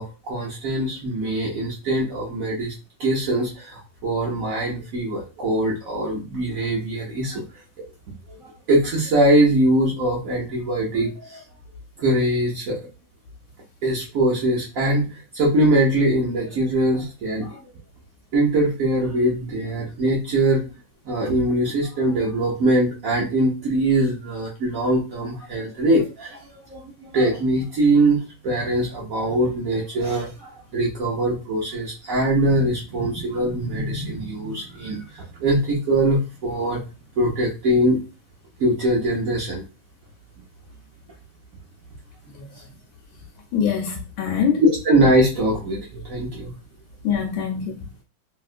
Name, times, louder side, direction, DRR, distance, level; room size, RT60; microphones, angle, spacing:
voice 1, 0.0-2.7 3.0-7.4 7.8-7.9 8.3-11.4 12.0-12.8 13.8-17.6 18.3-20.7 21.0-36.8 37.2-38.0 38.6-39.6 42.6-42.7 44.6-46.5, right 1 dB, 60° right, 0.9 m, -22 dB
voice 2, 43.5-44.6 47.0-47.9, left 7 dB, 80° left, 1.3 m, -24 dB
3.0 x 2.8 x 2.4 m
omnidirectional pair, 2.1 m